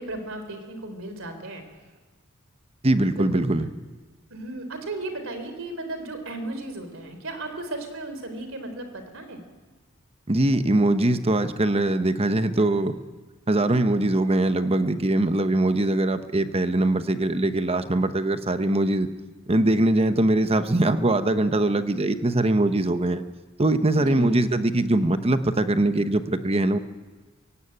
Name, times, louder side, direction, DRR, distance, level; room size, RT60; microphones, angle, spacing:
voice 1, 0.0-1.6 3.1-3.3 4.3-9.4 24.1-24.4, right 2 dB, 70° right, 7 dB, 3.7 m, -35 dB
voice 2, 2.8-3.7 10.3-12.9 13.5-19.1 19.5-23.2 23.6-26.8, right 1 dB, 30° right, 10 dB, 1.0 m, -22 dB
23.0 x 17.0 x 8.9 m, 1.3 s
head